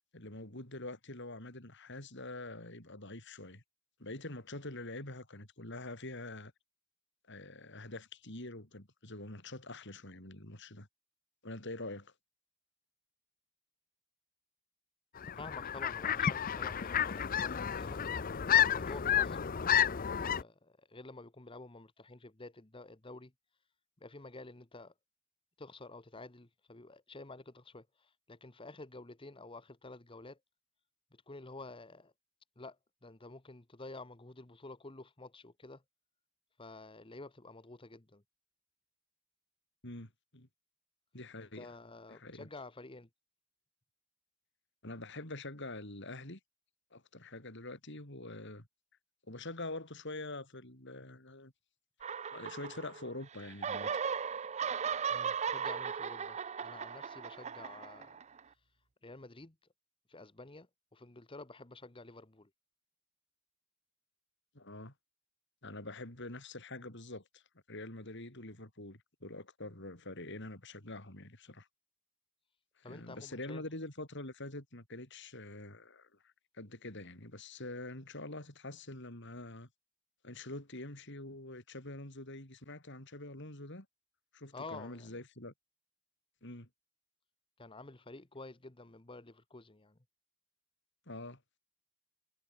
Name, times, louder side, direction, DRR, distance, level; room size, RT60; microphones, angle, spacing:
voice 1, 0.1-3.6 4.0-6.5 7.3-10.9 11.4-12.1 39.8-40.5 41.1-41.7 42.1-42.5 44.8-46.4 46.9-48.7 49.3-51.5 52.3-53.9 64.5-64.9 65.6-67.4 67.7-71.7 72.8-79.7 80.2-83.9 84.3-85.5 86.4-86.7 91.1-91.4, left 2 dB, 60° left, 5.5 m, -45 dB
sound 1, 15.2-20.4, left 9 dB, 45° left, 0.5 m, -31 dB
voice 2, 15.3-18.0 18.5-19.6 20.2-23.3 24.0-24.9 25.6-30.4 31.1-32.1 32.6-35.8 36.6-38.2 41.4-43.1 55.1-59.6 60.1-62.5 72.8-73.6 84.5-85.2 87.6-90.0, left 2 dB, 25° left, 1.2 m, -50 dB
sound 2, 52.0-53.2 53.4-58.4, right 7 dB, 35° right, 0.5 m, -37 dB
head